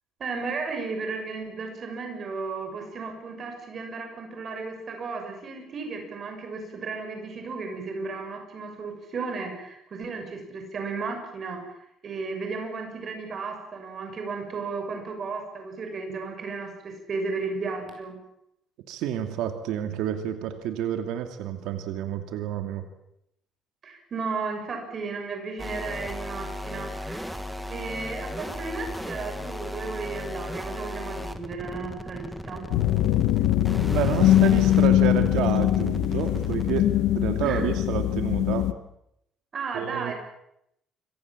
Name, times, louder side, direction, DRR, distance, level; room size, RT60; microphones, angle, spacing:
voice 1, 0.2-18.1 23.8-27.4 27.7-32.6 37.4-37.7 39.5-40.1, right 4 dB, 30° right, 4 dB, 6.6 m, -34 dB
voice 2, 18.9-22.8 33.9-36.9 37.1-38.7 39.7-40.1, right 10 dB, 85° right, 6 dB, 2.6 m, -29 dB
sound 1, 25.6-36.8, equal, ahead, 1.8 m, -36 dB
sound 2, 32.7-38.7, left 13 dB, 85° left, 1.5 m, -22 dB
28.0 x 24.0 x 7.5 m, 0.79 s
cardioid pair, 180°, 0 cm